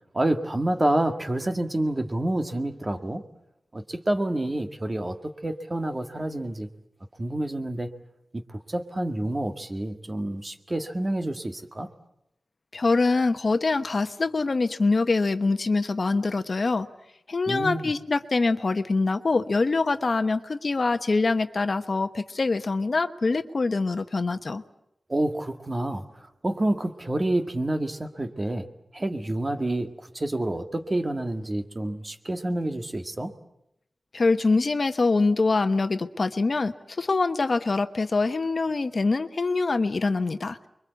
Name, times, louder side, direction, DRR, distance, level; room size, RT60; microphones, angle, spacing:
voice 1, 0.1-3.2 3.7-5.2 5.4-6.7 7.2-7.9 8.5-11.9 17.5-17.9 25.1-26.0 26.4-28.7 28.9-33.3, right 1 dB, 30° right, 6 dB, 1.9 m, -28 dB
voice 2, 12.7-16.9 17.3-24.6 34.1-40.6, left 3 dB, 55° left, 9 dB, 1.1 m, -24 dB
29.5 x 23.0 x 8.2 m, 0.82 s
wide cardioid pair, 90°, 0 cm